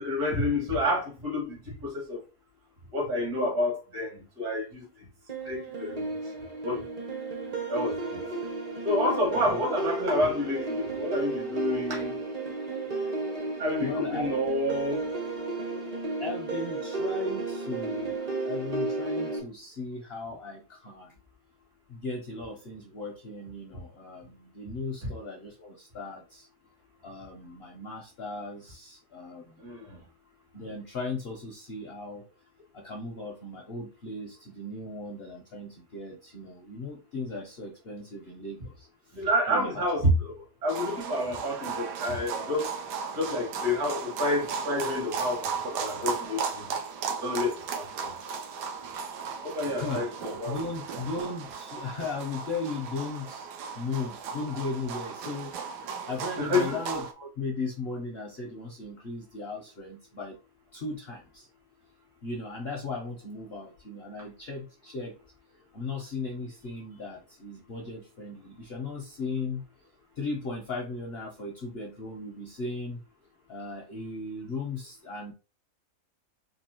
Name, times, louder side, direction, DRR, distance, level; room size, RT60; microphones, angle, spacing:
voice 1, 0.0-2.2 2.9-4.6 5.5-6.1 6.6-6.8 7.7-8.2 8.8-12.1 13.6-15.0 25.0-25.1 29.6-30.0 39.1-40.3 40.6-42.7 43.1-46.7 47.2-48.1 49.4-50.6 56.4-56.8, left 1 dB, 65° right, 2.2 m, -29 dB
sound 1, 5.3-19.4, right 3 dB, 35° right, 0.7 m, -33 dB
voice 2, 13.8-14.3 16.2-21.2 21.9-26.5 27.0-29.6 30.5-32.2 32.7-39.9 49.7-50.1 50.5-53.5 53.8-55.5 56.1-60.4 60.7-61.5 62.2-65.1 65.7-69.6 70.2-73.0 73.5-75.3, left 3 dB, 55° left, 0.7 m, -37 dB
sound 2, 40.7-57.1, right 5 dB, 85° right, 1.2 m, -36 dB
4.2 x 2.7 x 2.9 m
omnidirectional pair, 1.8 m